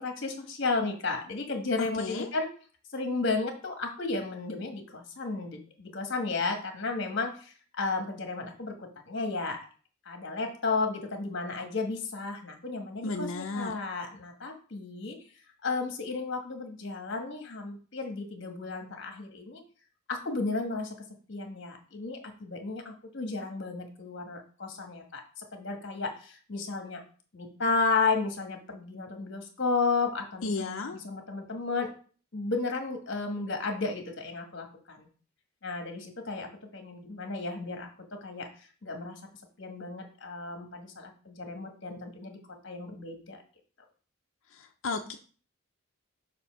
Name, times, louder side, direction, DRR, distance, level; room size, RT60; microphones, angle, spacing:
voice 1, 0.0-2.5 2.9-9.6 10.0-15.2 15.6-19.6 20.1-20.9 21.3-27.0 27.3-31.9 32.3-35.1 35.6-37.9 38.2-38.5 38.8-39.1 39.6-42.4 42.6-43.4, left 3 dB, 55° left, 4 dB, 1.3 m, -33 dB
voice 2, 1.8-2.3 13.0-13.8 30.4-31.0 44.5-45.2, left 3 dB, 70° left, 2 dB, 0.5 m, -34 dB
6.8 x 2.7 x 5.5 m, 0.40 s
head